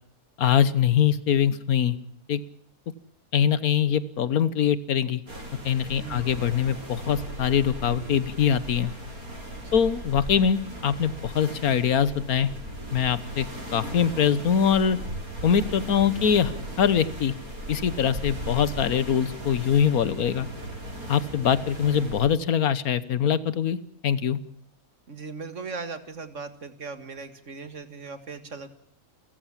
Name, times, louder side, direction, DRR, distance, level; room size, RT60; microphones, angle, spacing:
voice 1, 0.4-2.0 2.3-2.4 3.3-5.2 5.6-8.9 9.7-12.5 12.9-13.5 13.7-15.0 15.4-17.3 17.7-20.5 21.1-23.8 24.0-24.4, left 8 dB, 85° left, 17 dB, 1.6 m, -23 dB
sound 1, 5.3-22.3, right 1 dB, 80° right, 6.5 m, -37 dB
voice 2, 5.9-6.3 9.6-9.8 25.1-28.7, right 4 dB, 55° right, 11 dB, 2.1 m, -38 dB
30.0 x 14.5 x 7.4 m, 0.63 s
omnidirectional pair, 1.5 m